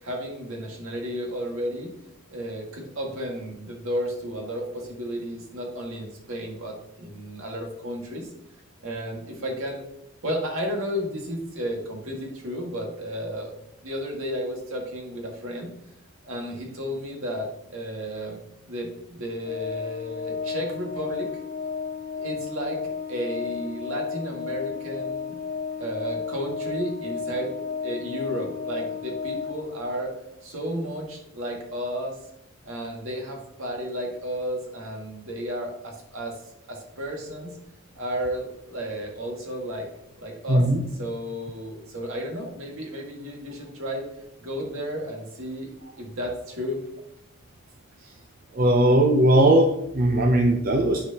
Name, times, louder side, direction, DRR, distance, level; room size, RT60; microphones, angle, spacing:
voice 1, 0.0-1.9 2.3-8.3 8.8-9.8 10.2-13.5 13.8-15.7 16.2-18.4 18.7-21.3 22.2-25.4 25.8-30.1 30.4-32.2 32.6-36.4 36.7-37.6 38.0-39.9 40.2-40.7 41.0-44.1 44.4-46.8, equal, 70° right, 0 dB, 1.9 m, -33 dB
Organ, 19.4-30.1, left 5 dB, 40° left, 0.4 m, -33 dB
voice 2, 40.5-40.8 48.5-51.0, right 1 dB, 40° right, 2 dB, 0.6 m, -19 dB
10.5 x 4.8 x 2.9 m, 0.81 s
head